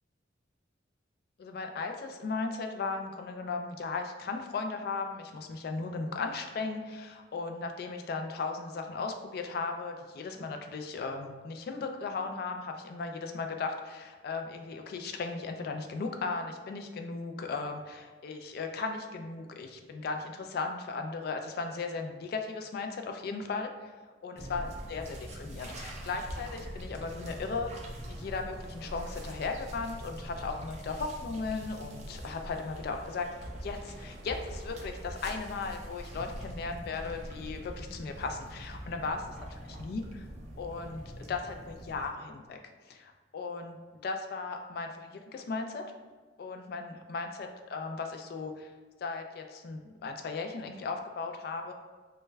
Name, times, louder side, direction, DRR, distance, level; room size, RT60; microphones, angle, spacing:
voice 1, 1.4-23.9 24.2-27.7 28.1-33.3 33.6-39.2 39.8-40.3 40.6-42.6 42.9-43.8 44.0-45.9 46.4-48.7 49.0-51.7, left 4 dB, 55° left, 5 dB, 0.3 m, -36 dB
sound 1, 24.4-42.1, equal, 40° right, 0.5 m, -43 dB
3.2 x 2.2 x 3.1 m, 1.4 s
head